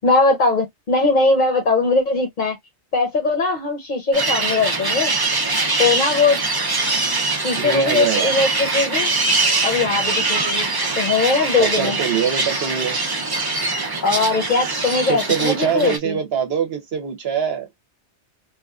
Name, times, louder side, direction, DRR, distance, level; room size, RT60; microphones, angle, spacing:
voice 1, 0.0-2.6 2.9-5.1 5.8-6.4 7.4-9.1 9.6-10.7 11.0-12.0 14.0-16.2, left 3 dB, 45° left, 0.8 m, -20 dB
sound 1, 4.1-16.0, right 3 dB, 30° right, 0.4 m, -22 dB
voice 2, 7.6-8.3 11.6-13.0 15.1-17.7, right 8 dB, 65° right, 0.9 m, -23 dB
2.9 x 2.4 x 2.3 m
omnidirectional pair, 1.2 m